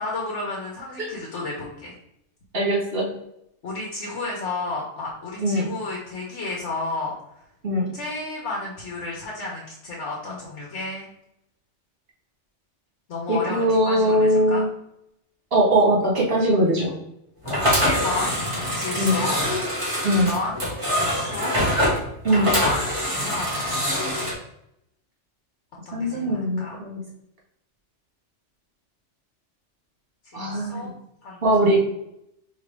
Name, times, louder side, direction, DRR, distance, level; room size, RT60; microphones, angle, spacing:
voice 1, 0.0-1.9 3.6-7.2 7.9-11.1 13.1-14.6 17.4-18.4 18.7-19.4 20.1-20.5 21.0-21.6 22.3-22.8 23.1-23.8 25.9-26.8 30.3-30.9 31.2-31.8, left 3 dB, 70° left, -2 dB, 1.2 m, -32 dB
voice 2, 2.5-3.1 5.4-5.7 7.6-7.9 13.3-14.7 15.5-17.0 19.0-19.1 20.0-20.3 22.2-22.5 25.9-27.0 30.3-30.9 31.4-31.8, right 1 dB, 55° right, -4 dB, 1.6 m, -21 dB
sound 1, 17.4-24.3, equal, 25° right, 1.4 m, -24 dB
4.9 x 2.9 x 3.3 m, 0.79 s
omnidirectional pair, 1.2 m